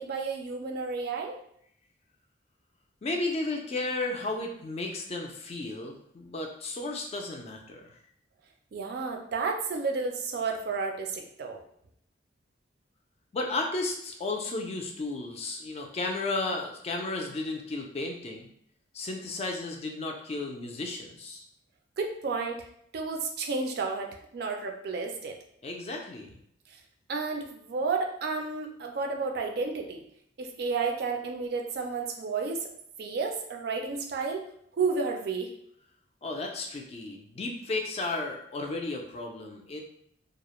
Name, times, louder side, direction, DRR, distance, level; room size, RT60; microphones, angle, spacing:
voice 1, 0.0-1.4 8.7-11.6 22.0-22.7 22.9-25.4 27.1-30.0 30.4-32.7 33.0-34.4 34.7-35.5, right 4 dB, 55° right, 3 dB, 0.4 m, -31 dB
voice 2, 3.0-8.0 13.3-18.5 18.9-21.4 25.6-26.3 36.2-39.8, left 2 dB, 35° left, 2 dB, 0.3 m, -33 dB
2.3 x 2.0 x 2.9 m, 0.70 s
head